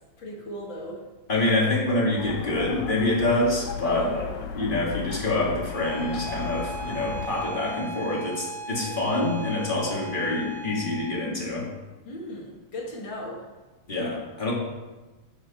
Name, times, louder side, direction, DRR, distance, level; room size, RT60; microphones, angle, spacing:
voice 1, 0.2-1.0 3.8-4.3 8.8-8.9 12.1-13.5, left 1 dB, 45° left, -2 dB, 2.1 m, -35 dB
voice 2, 1.3-4.1 4.5-11.7 13.9-14.5, left 2 dB, 20° left, -4 dB, 1.6 m, -26 dB
sound 1, 2.2-7.3, left 7 dB, 85° left, 2.2 m, -36 dB
Bowed string instrument, 5.7-11.3, right 2 dB, 60° left, 1.3 m, -38 dB
11.0 x 6.8 x 4.2 m, 1.2 s
omnidirectional pair, 3.4 m